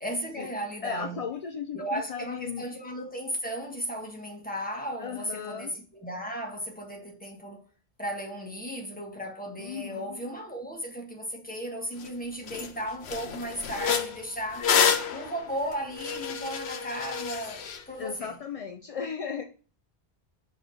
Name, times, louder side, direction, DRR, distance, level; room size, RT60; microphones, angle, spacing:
voice 1, 0.0-1.2 1.7-7.6 8.0-14.7 15.1-18.4, equal, 10° left, 1.4 m, -35 dB
voice 2, 0.8-2.7 5.0-5.7 9.6-10.2 18.0-19.4, left 7 dB, 50° left, 0.4 m, -36 dB
sound 1, 12.0-12.1 12.5-12.7 13.0-17.8, left 7 dB, 85° left, 1.0 m, -28 dB
6.0 x 3.4 x 5.5 m
omnidirectional pair, 1.0 m